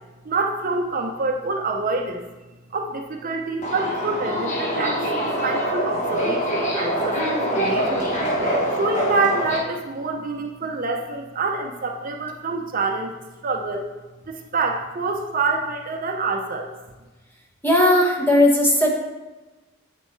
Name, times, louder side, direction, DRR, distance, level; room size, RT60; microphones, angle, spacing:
voice 1, 0.2-2.2 2.7-8.1 8.7-13.1 13.4-13.9 14.3-16.7, right 3 dB, 45° right, 2 dB, 0.6 m, -26 dB
Subway metro underground, 3.6-9.6, equal, 35° left, 1.2 m, -24 dB
voice 2, 17.6-19.0, left 1 dB, 10° left, -1 dB, 1.1 m, -17 dB
8.4 x 6.7 x 3.2 m, 1.2 s
head